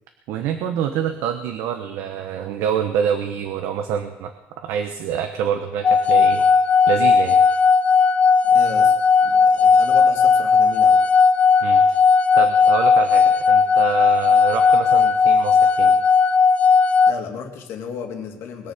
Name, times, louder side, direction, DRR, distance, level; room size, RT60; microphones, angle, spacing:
voice 1, 0.3-4.3 4.6-6.5 6.9-7.4 11.6-11.8 12.3-16.0, right 8 dB, 90° right, 6 dB, 1.1 m, -26 dB
sound 1, 5.8-17.1, left 5 dB, 30° left, 0.4 m, -16 dB
voice 2, 8.4-8.9 9.2-11.0 17.1-18.7, left 6 dB, 70° left, 2 dB, 2.5 m, -34 dB
21.0 x 7.1 x 6.7 m, 0.97 s
cardioid pair, 145°, 5 cm